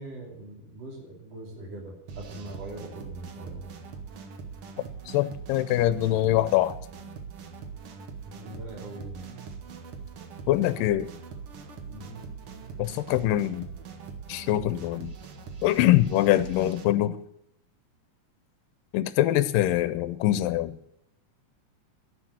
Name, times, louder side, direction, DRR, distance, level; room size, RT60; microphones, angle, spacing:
voice 1, 0.0-3.7 8.3-9.3 11.9-12.3, right 1 dB, 45° right, -1 dB, 3.8 m, -41 dB
sound 1, 2.1-16.9, right 6 dB, 65° right, 1.4 m, -42 dB
voice 2, 5.1-6.7 10.5-11.1 12.8-13.7 14.3-15.2 15.6-17.2 18.9-20.8, left 14 dB, 80° left, 14 dB, 2.2 m, -23 dB
11.0 x 7.1 x 9.4 m, 0.75 s
omnidirectional pair, 4.1 m